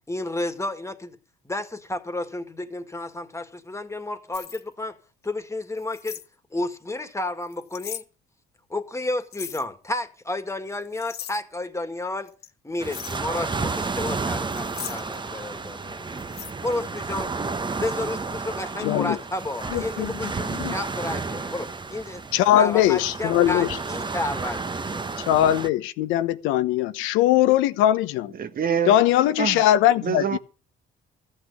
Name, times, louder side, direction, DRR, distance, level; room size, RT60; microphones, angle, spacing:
voice 1, 0.1-1.2 1.4-5.0 5.2-6.2 6.5-8.0 8.7-12.3 12.6-16.2 16.6-17.4 17.8-22.2 22.5-25.1, left 2 dB, 15° left, 2.0 m, -31 dB
sound 1, 4.3-4.6 5.8-6.3 7.4-8.0 9.3-9.6 10.7-11.4 12.3-12.5 12.8-13.2 14.5-15.2 16.2-16.5, left 9 dB, 55° left, 1.1 m, -38 dB
sound 2, 12.8-25.7, right 4 dB, 25° right, 1.0 m, -31 dB
voice 2, 18.8-19.2 19.7-20.3 20.6-20.7 22.3-23.7 25.3-28.3 28.9-30.4, left 12 dB, 85° left, 0.9 m, -20 dB
voice 3, 28.3-29.0 29.4-29.6 30.0-30.4, right 7 dB, 45° right, 1.2 m, -25 dB
14.5 x 6.4 x 8.5 m
supercardioid pair, 75°, 20 cm